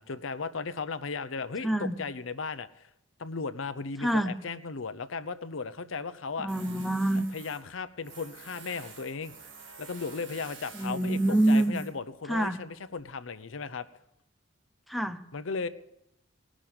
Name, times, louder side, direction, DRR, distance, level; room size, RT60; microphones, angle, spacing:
voice 1, 0.0-2.9 3.2-6.5 7.3-9.3 9.8-13.9 15.3-15.7, left 4 dB, 85° left, 12 dB, 0.7 m, -36 dB
voice 2, 1.6-1.9 4.0-4.3 6.4-7.2 10.7-11.8 12.3-12.6 14.9-15.2, right 1 dB, ahead, 7 dB, 0.6 m, -26 dB
Tools, 6.5-13.0, right 5 dB, 70° right, 2.0 m, -50 dB
18.5 x 6.3 x 8.7 m, 0.82 s
head